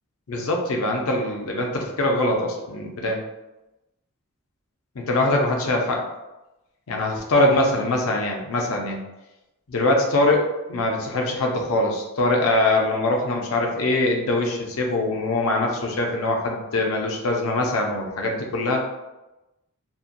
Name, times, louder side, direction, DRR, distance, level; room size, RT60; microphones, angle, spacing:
voice 1, 0.3-3.2 5.0-6.0 6.9-9.0 9.7-18.9, left 2 dB, 70° left, 1 dB, 0.5 m, -23 dB
2.7 x 2.1 x 2.5 m, 0.99 s
head